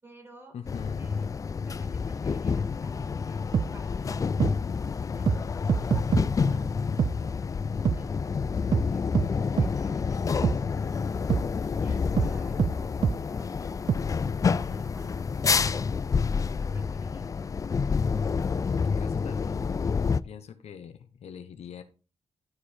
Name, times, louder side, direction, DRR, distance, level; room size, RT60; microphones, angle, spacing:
voice 1, 0.0-0.6 0.9-1.3 1.6-3.5 3.7-4.5 5.1-7.4 7.9-9.3 9.6-13.0 13.3-15.7 16.4-17.3, equal, 20° right, 1 dB, 3.9 m, -52 dB
voice 2, 0.5-1.1 18.7-19.7 20.2-21.8, left 8 dB, 70° left, 9 dB, 1.0 m, -43 dB
sound 1, 0.7-20.2, left 5 dB, 30° left, 0.4 m, -28 dB
sound 2, 3.5-3.7 4.4-4.5 5.3-5.4 5.7-6.3 7.0-7.1 7.8-8.0 8.7-8.9 9.1-9.3 9.6-9.7 10.4-10.6 11.3-11.4 12.2-12.3 12.6-12.7 13.0-13.2 13.9-14.0, right 7 dB, 40° right, 0.4 m, -24 dB
11.0 x 5.0 x 4.3 m, 0.34 s
cardioid pair, 110°, 11 cm